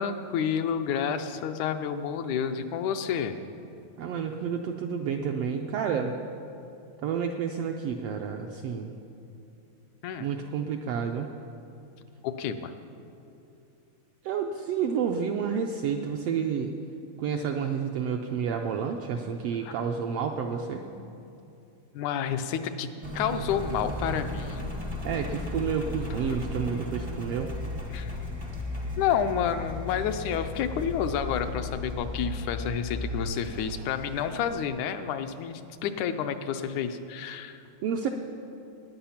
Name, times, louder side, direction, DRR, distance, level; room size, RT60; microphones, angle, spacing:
voice 1, 0.0-3.4 10.0-10.3 12.2-12.7 19.6-19.8 21.9-22.9 23.2-24.7 26.3-26.4 27.9-28.2 29.0-37.6, left 8 dB, 80° left, 8 dB, 2.0 m, -30 dB
voice 2, 4.0-6.1 7.0-9.0 10.2-11.3 14.2-16.7 17.2-20.8 25.0-27.5 37.8-38.1, right 7 dB, 80° right, 3 dB, 1.4 m, -30 dB
Engine, 23.0-34.6, left 2 dB, 45° right, 0.3 m, -35 dB
19.0 x 9.0 x 5.8 m, 2.7 s
omnidirectional pair, 3.4 m